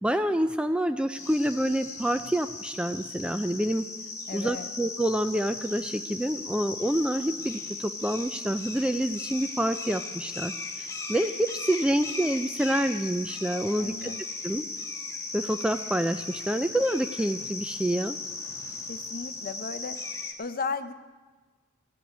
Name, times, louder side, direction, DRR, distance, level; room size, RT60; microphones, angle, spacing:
voice 1, 0.0-3.8 4.3-14.1 14.4-14.7 15.3-18.2, right 1 dB, 5° right, 9 dB, 0.3 m, -27 dB
sound 1, 1.2-20.3, left 3 dB, 15° left, 1.4 m, -37 dB
voice 2, 4.3-4.7 13.8-14.2 18.9-20.0 20.4-20.9, left 4 dB, 45° left, 11 dB, 0.6 m, -35 dB
16.5 x 6.1 x 9.7 m, 1.3 s
head